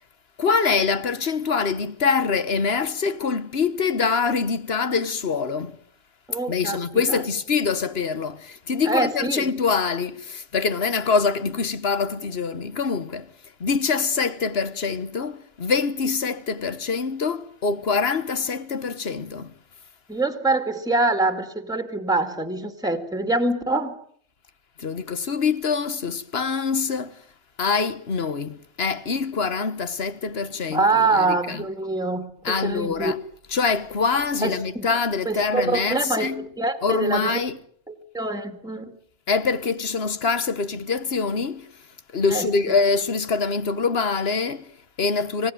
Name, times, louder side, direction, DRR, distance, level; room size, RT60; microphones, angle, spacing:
voice 1, 0.4-5.8 6.5-13.3 13.6-19.5 24.8-27.2 27.6-31.6 32.4-33.2 33.5-36.5 36.8-37.6 39.3-41.7 42.1-45.5, left 5 dB, 65° left, 1.6 m, -24 dB
voice 2, 6.3-6.8 7.1-7.2 8.9-9.5 20.1-24.0 30.7-33.1 34.4-34.9 35.3-37.3 37.9-39.0 42.3-42.5, right 3 dB, 5° right, 2.3 m, -25 dB
26.0 x 17.5 x 9.3 m
omnidirectional pair, 1.1 m